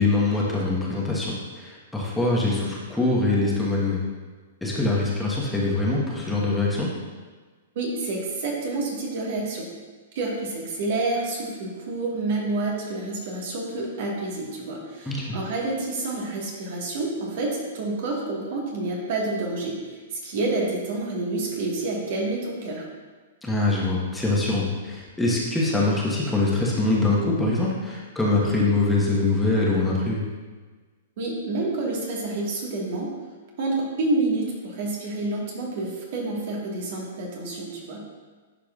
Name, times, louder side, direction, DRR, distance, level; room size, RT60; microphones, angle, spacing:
voice 1, 0.0-4.0 4.6-6.9 15.0-15.4 23.4-30.2, left 2 dB, 5° left, -5 dB, 1.3 m, -23 dB
voice 2, 7.7-9.7 10.1-22.8 31.2-33.1 33.6-38.1, right 2 dB, 55° right, -2 dB, 1.7 m, -28 dB
10.5 x 4.7 x 2.5 m, 1.4 s
hypercardioid pair, 115°, 0 cm